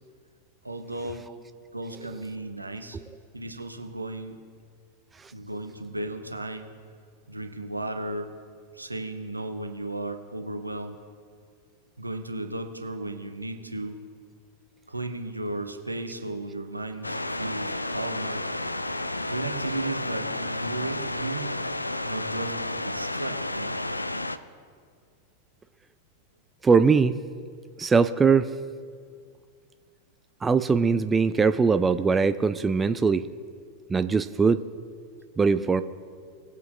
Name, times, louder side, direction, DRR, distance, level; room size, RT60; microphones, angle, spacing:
voice 1, 0.6-1.3 1.7-3.0 3.3-4.4 5.3-6.7 7.3-8.3 8.7-11.0 12.0-14.0 14.9-18.5 19.2-21.5 22.0-23.8, right 2 dB, 85° right, 6 dB, 0.9 m, -35 dB
sound 1, 17.0-24.4, left 2 dB, 85° left, 0.4 m, -31 dB
voice 2, 26.6-27.1 27.8-28.5 30.4-33.3 33.9-34.6 35.4-35.8, right 5 dB, 15° right, 12 dB, 0.3 m, -21 dB
20.0 x 8.1 x 2.5 m, 2.1 s
figure-of-eight pair, 90°, 0 cm